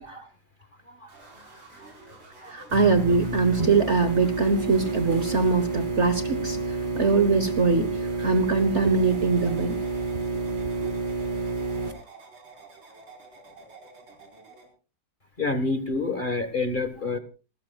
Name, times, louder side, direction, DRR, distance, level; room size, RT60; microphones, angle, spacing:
sound 1, 1.1-14.7, right 2 dB, 90° right, 5.4 m, -49 dB
voice 1, 2.5-6.6 6.9-9.8 10.8-11.0, right 4 dB, 45° right, 10 dB, 1.3 m, -22 dB
sound 2, 2.7-11.9, right 3 dB, 25° right, 2.4 m, -29 dB
voice 2, 15.4-17.2, left 3 dB, 30° left, 8 dB, 1.5 m, -28 dB
28.0 x 13.5 x 2.3 m, 0.34 s
omnidirectional pair, 2.0 m